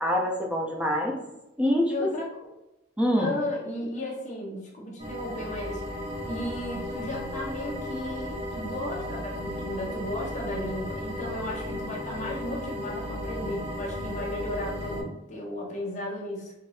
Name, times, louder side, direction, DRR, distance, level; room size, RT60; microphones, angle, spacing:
voice 1, 0.0-1.2 1.6-2.1 3.0-3.3, equal, 5° right, 0 dB, 0.5 m, -25 dB
voice 2, 1.9-2.3 3.2-5.9 6.2-16.5, left 1 dB, 35° left, -3 dB, 1.0 m, -34 dB
sound 1, 5.0-15.0, left 1 dB, 30° right, 0.8 m, -35 dB
4.4 x 2.6 x 3.1 m, 0.90 s
head